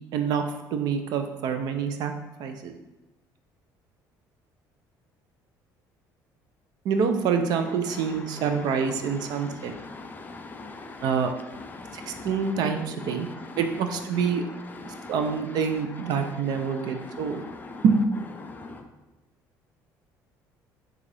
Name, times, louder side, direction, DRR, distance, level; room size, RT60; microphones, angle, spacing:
voice 1, 0.1-0.4 0.7-2.1 2.4-2.7 6.8-9.7 11.0-11.3 11.9-13.3 13.6-14.4 14.8-17.4 17.8-18.0, right 6 dB, 65° right, 6 dB, 0.5 m, -26 dB
voice 2, 9.4-11.1 11.6-12.3 13.2-13.5 14.8-15.1 16.6-17.8 18.4-18.8, left 3 dB, 25° left, 5 dB, 0.5 m, -41 dB
6.3 x 2.4 x 3.3 m, 1.1 s
cardioid pair, 115°, 7 cm